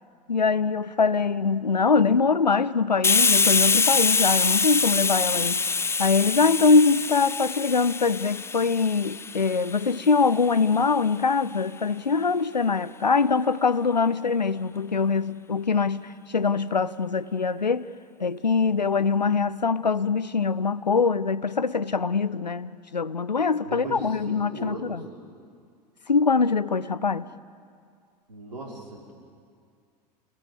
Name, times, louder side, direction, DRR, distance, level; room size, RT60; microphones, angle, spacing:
voice 1, 0.3-5.6 6.0-16.0 16.3-17.9 18.2-25.0 26.1-27.2, left 4 dB, 90° left, 0.7 m, -23 dB
Hiss, 3.0-10.4, left 4 dB, 10° left, 0.8 m, -24 dB
voice 2, 23.6-25.0 28.3-29.1, right 2 dB, 80° right, 5.2 m, -38 dB
28.5 x 20.5 x 8.2 m
figure-of-eight pair, 85°, 21 cm